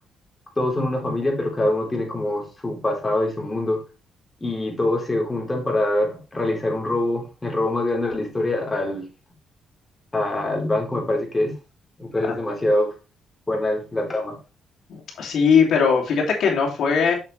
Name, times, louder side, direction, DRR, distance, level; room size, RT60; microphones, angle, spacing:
voice 1, 0.6-3.8 4.4-9.1 10.1-11.5 12.0-12.9 13.5-14.4, left 1 dB, 20° left, 0 dB, 3.6 m, -24 dB
voice 2, 14.9-17.1, left 6 dB, 70° left, 0 dB, 2.8 m, -19 dB
7.2 x 6.8 x 3.3 m, 0.31 s
cardioid pair, 90°, 0 cm